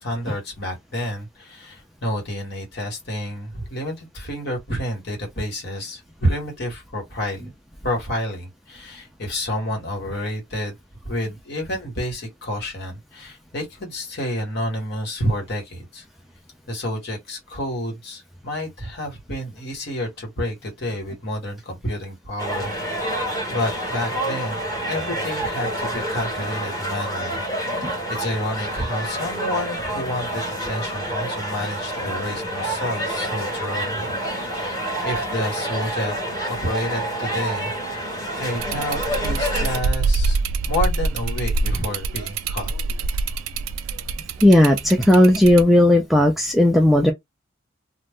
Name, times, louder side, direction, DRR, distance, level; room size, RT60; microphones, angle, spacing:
voice 1, 0.0-7.5 7.8-10.8 11.0-16.0 16.7-24.6 24.9-27.5 27.7-34.8 35.0-36.1 36.5-38.1 38.4-40.4 40.7-42.7, equal, 55° left, 1.4 m, -29 dB
sound 1, 22.4-39.8, right 1 dB, 15° left, 1.3 m, -28 dB
sound 2, 38.6-45.6, right 3 dB, 85° right, 0.3 m, -25 dB
voice 2, 44.4-47.1, left 1 dB, ahead, 0.3 m, -15 dB
2.5 x 2.1 x 3.4 m
head